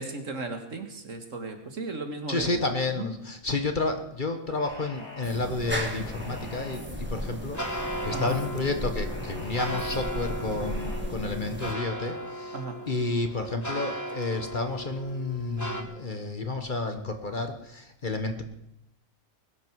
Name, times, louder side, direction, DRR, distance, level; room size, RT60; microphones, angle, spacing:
voice 1, 0.0-2.6 2.9-3.1 8.1-8.4 12.5-12.8, right 3 dB, 65° right, 5 dB, 2.1 m, -35 dB
voice 2, 2.3-12.6 12.9-18.4, left 3 dB, 35° left, 6 dB, 1.3 m, -31 dB
sound 1, 4.5-5.3 6.0-6.9 7.5-8.4 9.0-10.0 10.6-11.0, left 1 dB, 55° left, 4.9 m, -45 dB
sound 2, 4.9-15.8, right 1 dB, 15° left, 1.4 m, -37 dB
sound 3, 5.2-11.7, equal, 10° right, 1.6 m, -36 dB
21.0 x 11.5 x 4.7 m, 0.80 s
omnidirectional pair, 1.4 m